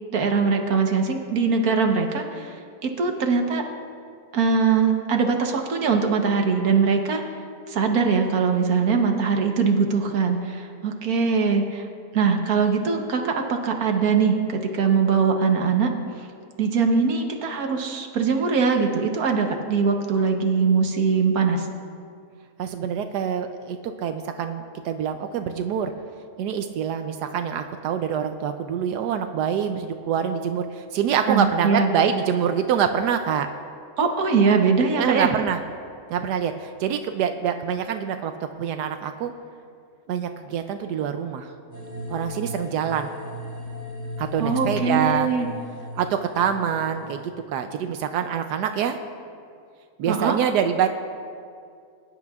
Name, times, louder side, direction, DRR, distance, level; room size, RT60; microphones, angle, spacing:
voice 1, 0.1-2.5 2.8-3.6 4.3-7.2 7.7-11.8 12.1-15.9 16.6-21.7 31.3-31.9 34.0-35.3 44.4-45.5 50.1-50.4, right 5 dB, 65° right, 3 dB, 1.4 m, -22 dB
voice 2, 22.6-25.9 26.4-33.5 35.0-35.6 36.1-38.3 38.6-39.3 40.1-41.5 42.1-43.1 44.2-45.3 45.9-47.2 47.5-49.0 50.0-50.9, right 8 dB, 80° right, 7 dB, 1.2 m, -25 dB
sound 1, 41.7-47.2, left 2 dB, 30° right, 2.4 m, -35 dB
22.5 x 10.5 x 2.4 m, 2.3 s
omnidirectional pair, 1.8 m